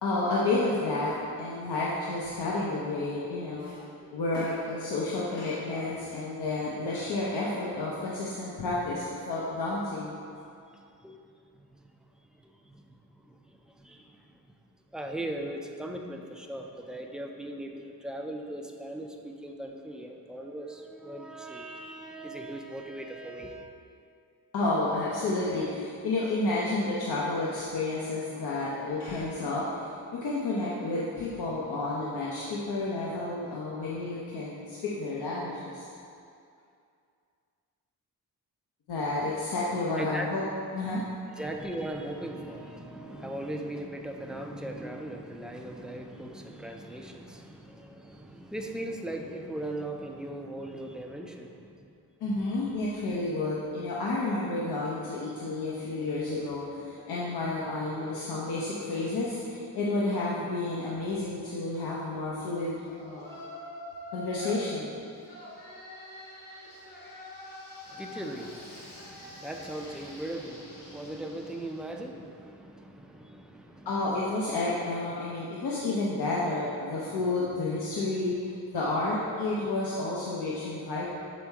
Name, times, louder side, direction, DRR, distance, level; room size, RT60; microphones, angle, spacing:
voice 1, 0.0-3.8 4.1-10.1 24.5-35.9 38.9-40.4 40.7-41.0 52.2-63.4 64.1-64.9 73.9-81.1, left 2 dB, 75° left, -6 dB, 0.9 m, -31 dB
voice 2, 14.9-23.7 40.0-40.3 40.8-41.0 41.4-51.7 67.9-73.9 77.1-77.2, right 1 dB, ahead, 2 dB, 0.3 m, -39 dB
Yell, 63.1-64.7 65.2-72.0, left 1 dB, 60° left, 1.4 m, -45 dB
7.4 x 4.4 x 3.5 m, 2.5 s
wide cardioid pair, 130°, 39 cm